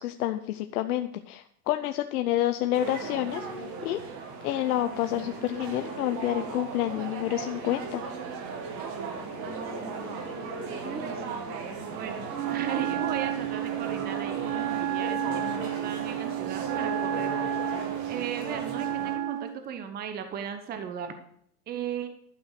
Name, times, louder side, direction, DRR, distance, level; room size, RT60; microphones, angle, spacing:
voice 1, 0.0-3.5 3.8-4.0 4.4-8.0, left 13 dB, 70° left, 8 dB, 0.8 m, -28 dB
sound 1, 2.7-19.2, right 5 dB, 40° right, 2.3 m, -37 dB
Singing / Musical instrument, 2.8-14.6, left 2 dB, 15° left, 3.3 m, -47 dB
voice 2, 9.4-10.1 10.8-17.7 18.1-21.2 21.7-22.1, right 7 dB, 20° right, 7 dB, 1.0 m, -37 dB
Wind instrument woodwind instrument, 12.3-19.6, right 10 dB, 75° right, 1.5 m, -31 dB
12.0 x 6.0 x 6.6 m, 0.69 s
supercardioid pair, 140°, 47 cm